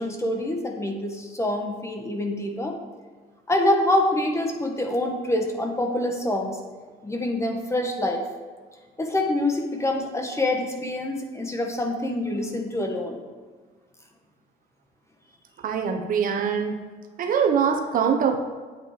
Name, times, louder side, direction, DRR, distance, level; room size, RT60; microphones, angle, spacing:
voice 1, 0.0-2.8 3.5-6.6 7.0-8.2 9.0-13.2, left 1 dB, 15° left, 3 dB, 1.5 m, -26 dB
voice 2, 15.6-16.8 17.2-18.4, right 7 dB, 55° right, 5 dB, 1.2 m, -23 dB
8.5 x 8.5 x 5.1 m, 1.5 s
cardioid pair, 110°, 17 cm